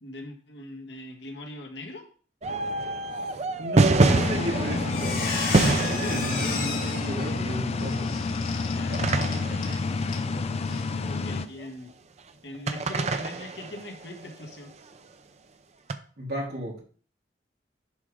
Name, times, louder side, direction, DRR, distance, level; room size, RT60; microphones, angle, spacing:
voice 1, 0.0-2.1 6.4-6.7 8.7-10.6 11.0-11.9 12.4-14.7, left 1 dB, 70° left, 2 dB, 1.8 m, -41 dB
sound 1, 2.4-11.7 12.7-14.5 15.9-16.0, right 3 dB, 40° right, 0.6 m, -27 dB
voice 2, 3.6-5.3 5.8-8.1 8.9-9.0 16.2-16.8, right 1 dB, 60° right, -3 dB, 3.1 m, -33 dB
sound 2, 4.0-11.5, left 3 dB, 35° left, 0.4 m, -29 dB
Squeak, 4.4-4.5 4.8-9.8 10.1-10.3 10.7-10.8, left 4 dB, 50° left, 2.5 m, -34 dB
11.0 x 3.8 x 4.9 m, 0.42 s
head